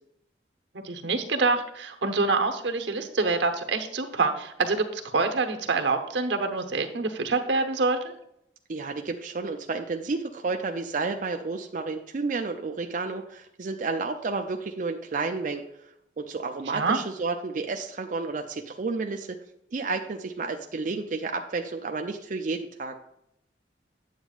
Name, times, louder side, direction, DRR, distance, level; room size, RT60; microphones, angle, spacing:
voice 1, 0.8-8.2 16.7-17.0, right 3 dB, 80° right, 6 dB, 0.9 m, -26 dB
voice 2, 8.7-15.6 16.2-19.4 19.7-22.9, right 3 dB, 45° right, 4 dB, 0.4 m, -31 dB
8.8 x 8.0 x 2.4 m, 0.77 s
head